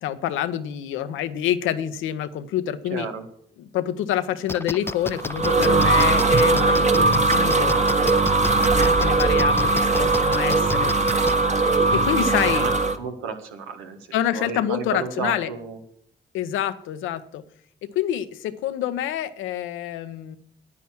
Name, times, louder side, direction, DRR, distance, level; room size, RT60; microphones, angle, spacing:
voice 1, 0.0-3.1 3.7-7.7 8.7-11.3 11.6-12.7 14.1-15.5 16.3-17.4 17.9-20.4, left 11 dB, 80° left, 11 dB, 0.8 m, -27 dB
voice 2, 2.9-3.2 12.2-15.8, right 5 dB, 90° right, 5 dB, 1.4 m, -33 dB
sound 1, 4.5-11.4, left 2 dB, 10° left, 0.5 m, -31 dB
sound 2, 5.0-13.0, right 3 dB, 35° right, 1.3 m, -20 dB
9.8 x 9.4 x 6.0 m, 0.66 s
hypercardioid pair, 45°, 20 cm